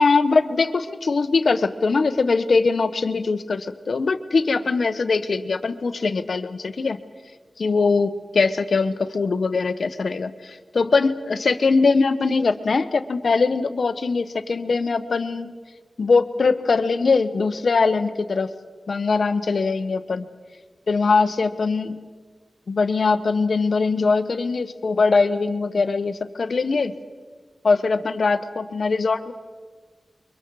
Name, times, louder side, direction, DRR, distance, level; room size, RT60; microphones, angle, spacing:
voice 1, 0.0-7.0 7.6-15.5 16.0-18.5 18.9-20.3 20.9-22.1 22.7-26.9 27.6-29.3, left 4 dB, 75° left, 10 dB, 1.1 m, -21 dB
29.0 x 23.5 x 4.8 m, 1.5 s
wide cardioid pair, 70°, 0 cm